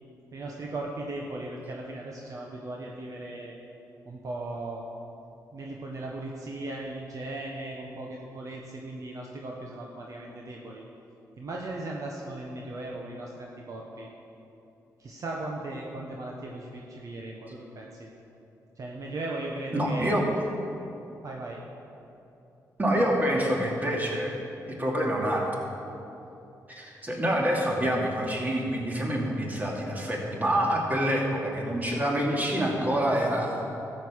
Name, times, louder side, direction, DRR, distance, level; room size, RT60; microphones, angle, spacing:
voice 1, 0.3-3.6 4.0-4.8 5.5-10.8 11.4-14.1 15.0-18.1 18.8-20.2 21.2-21.6, right 2 dB, 55° right, -1 dB, 1.3 m, -37 dB
voice 2, 19.7-20.2 22.8-24.3 24.7-25.6 26.7-33.7, equal, 25° right, -1 dB, 2.6 m, -27 dB
13.5 x 7.9 x 6.4 m, 2.9 s
cardioid pair, 80°, 7 cm